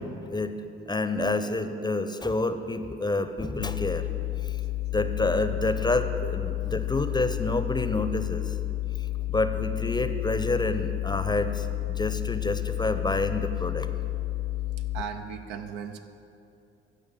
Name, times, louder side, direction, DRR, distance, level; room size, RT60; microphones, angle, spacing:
voice 1, 0.9-4.0 4.9-8.5 9.3-13.9, left 2 dB, 15° left, 9 dB, 0.6 m, -28 dB
sound 1, 3.6-15.0, left 17 dB, 75° left, 0.5 m, -31 dB
voice 2, 14.9-16.0, right 7 dB, 80° right, 6 dB, 0.7 m, -37 dB
11.5 x 5.0 x 6.8 m, 2.7 s
hypercardioid pair, 50°, 30 cm